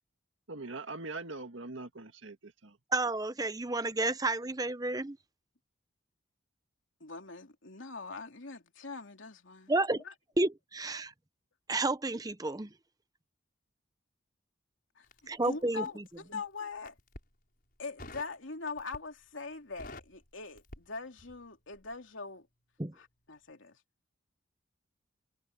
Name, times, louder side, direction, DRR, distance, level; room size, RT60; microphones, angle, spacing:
voice 1, 0.5-2.8, right 3 dB, 70° right, 1.8 m, -42 dB
voice 2, 2.9-5.2 9.7-10.0 10.4-11.1 11.7-12.7 15.3-15.8 22.8-22.9, right 2 dB, 20° right, 0.7 m, -31 dB
voice 3, 7.0-9.7 10.0-10.1 14.9-15.1 15.4-17.0 17.8-22.5 22.9-23.8, left 4 dB, 70° left, 2.9 m, -42 dB
Crackle, 15.0-16.2 16.7-17.3 18.0-18.4 18.8-19.2 19.5-21.5 21.7-22.0, left 1 dB, 45° left, 6.6 m, -49 dB
head